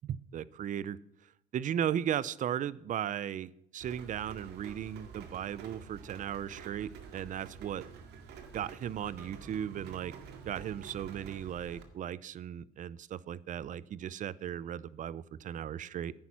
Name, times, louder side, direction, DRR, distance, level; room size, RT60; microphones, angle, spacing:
voice 1, 0.1-1.0 1.5-7.8 8.5-10.1 10.4-16.1, right 10 dB, 50° right, 20 dB, 0.6 m, -36 dB
Rain, 3.8-11.8, right 6 dB, 80° right, 2.0 m, -49 dB
10.5 x 9.6 x 5.8 m, 0.76 s
cardioid pair, 110°, 17 cm